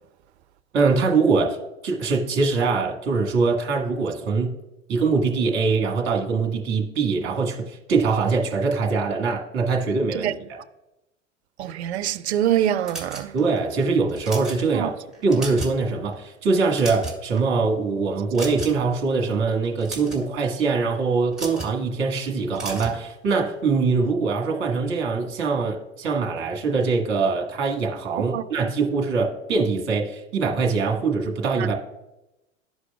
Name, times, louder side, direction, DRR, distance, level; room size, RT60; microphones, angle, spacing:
voice 1, 0.7-1.6 1.8-4.6 4.9-10.6 13.3-14.9 15.2-31.7, right 4 dB, 30° right, 1.3 m, -23 dB
voice 2, 11.6-13.3 14.7-14.9 28.3-28.4, right 11 dB, 60° right, 0.5 m, -24 dB
sound 1, 12.8-13.6 14.1-14.6 15.1-15.8 16.1-16.3 16.6-17.4 18.3-18.9 19.6-20.2 21.3-21.7 22.5-23.0, right 3 dB, ahead, 1.6 m, -34 dB
12.5 x 4.8 x 2.3 m
figure-of-eight pair, 85°, 38 cm